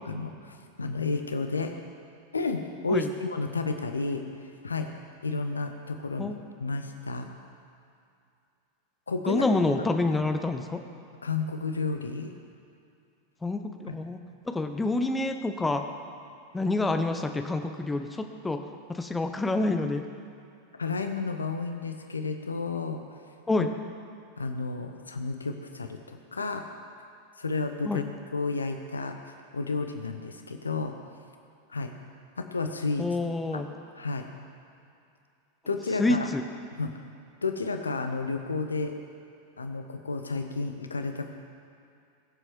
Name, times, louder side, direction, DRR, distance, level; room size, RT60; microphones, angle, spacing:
voice 1, 0.1-1.7 2.3-4.2 4.6-4.9 5.2-6.3 6.6-7.3 9.1-9.4 11.2-12.3 13.9-14.0 20.8-23.0 23.6-23.7 24.4-26.6 27.4-30.9 31.7-31.9 32.4-33.0 33.5-33.6 34.0-34.3 35.7-36.3 36.8-36.9 37.4-38.9 39.6-41.3, left 3 dB, 75° left, 6 dB, 1.0 m, -31 dB
voice 2, 9.3-10.8 13.4-14.2 14.4-15.8 16.5-18.6 18.9-20.0 23.5-23.7 27.8-28.0 33.0-33.7 36.0-36.4, left 2 dB, 10° left, 6 dB, 1.0 m, -27 dB
21.0 x 7.7 x 4.7 m, 2.5 s
figure-of-eight pair, 90°, 0 cm